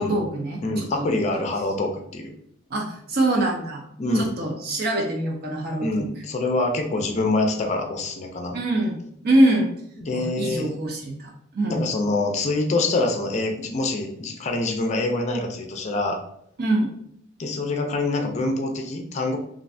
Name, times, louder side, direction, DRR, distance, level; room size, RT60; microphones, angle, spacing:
voice 1, 0.0-1.1 2.7-3.8 4.1-6.0 8.5-9.0 9.2-9.7 10.1-11.8 16.6-16.9, right 1 dB, 50° right, 0 dB, 0.5 m, -24 dB
voice 2, 0.6-2.3 4.0-4.3 5.8-8.5 10.0-10.7 11.7-16.2 17.4-19.4, left 2 dB, 35° left, 3 dB, 0.4 m, -25 dB
3.1 x 2.6 x 2.6 m, 0.73 s
head